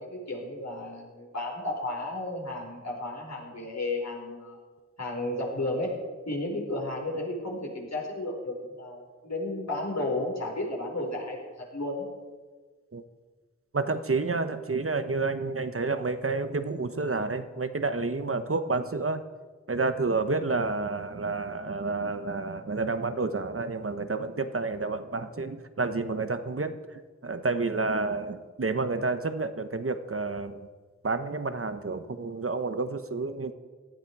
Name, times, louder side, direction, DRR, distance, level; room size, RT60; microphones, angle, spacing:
voice 1, 0.0-4.6 5.0-5.9 6.2-12.0, left 2 dB, 65° left, -2 dB, 4.9 m, -33 dB
voice 2, 13.7-19.2 19.7-30.7 31.0-33.5, right 3 dB, 50° right, 10 dB, 1.0 m, -30 dB
18.0 x 13.5 x 4.8 m, 1.4 s
wide cardioid pair, 60°, 29 cm